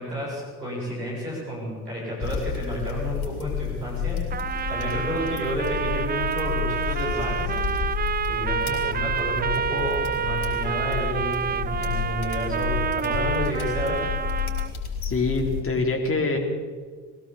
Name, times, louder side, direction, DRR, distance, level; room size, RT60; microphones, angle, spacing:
voice 1, 0.0-7.5 8.3-14.0, equal, 90° right, -5 dB, 7.3 m, -31 dB
sound 1, 2.2-15.6, left 7 dB, 65° left, 4.5 m, -31 dB
Trumpet, 4.3-14.7, right 7 dB, 20° right, 0.5 m, -28 dB
voice 2, 15.0-16.4, left 3 dB, 30° left, 1 dB, 4.0 m, -24 dB
21.5 x 17.0 x 7.3 m, 1.5 s
figure-of-eight pair, 45°, 46 cm